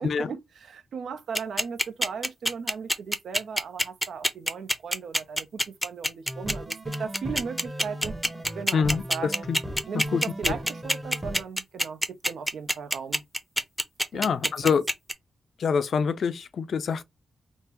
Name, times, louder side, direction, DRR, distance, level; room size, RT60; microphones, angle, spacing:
voice 1, 0.0-8.2 8.5-9.5 9.9-13.2 14.1-14.3 14.6-14.7, right 6 dB, 75° right, 0.5 m, -37 dB
sound 1, 1.4-15.1, equal, ahead, 0.6 m, -25 dB
sound 2, 6.3-11.4, right 1 dB, 25° right, 1.1 m, -37 dB
voice 2, 8.7-9.6 9.9-10.6 14.1-14.8 15.6-17.0, left 6 dB, 70° left, 0.4 m, -26 dB
3.4 x 2.0 x 2.9 m
supercardioid pair, 45°, 0 cm